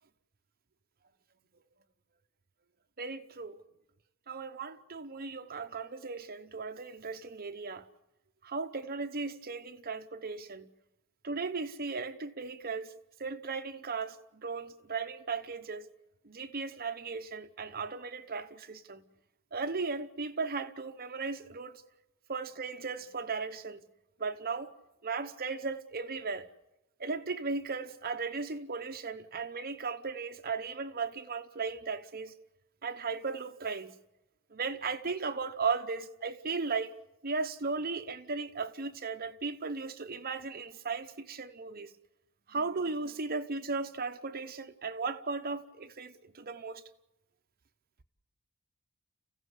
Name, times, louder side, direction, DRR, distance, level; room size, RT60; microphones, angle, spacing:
voice 1, 3.0-3.6 4.3-7.9 8.4-10.7 11.2-12.9 13.2-15.9 16.2-19.0 19.5-21.8 22.3-23.8 24.2-24.7 25.0-26.5 27.0-32.3 32.8-33.9 34.5-36.9 37.2-41.9 42.5-46.8, right 4 dB, 40° right, 0.9 m, -36 dB
28.5 x 15.5 x 8.2 m
head